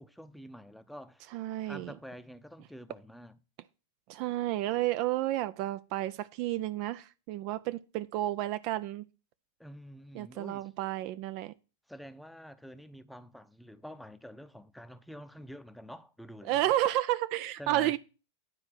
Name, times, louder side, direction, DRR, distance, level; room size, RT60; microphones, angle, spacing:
voice 1, 0.0-1.3 1.6-3.4 9.6-10.7 11.9-16.7 17.6-18.0, equal, ahead, 0.7 m, -48 dB
voice 2, 1.3-1.9 4.1-9.0 10.1-11.5 16.4-18.0, right 14 dB, 45° right, 0.4 m, -31 dB
9.8 x 4.3 x 7.3 m
figure-of-eight pair, 90°, 0 cm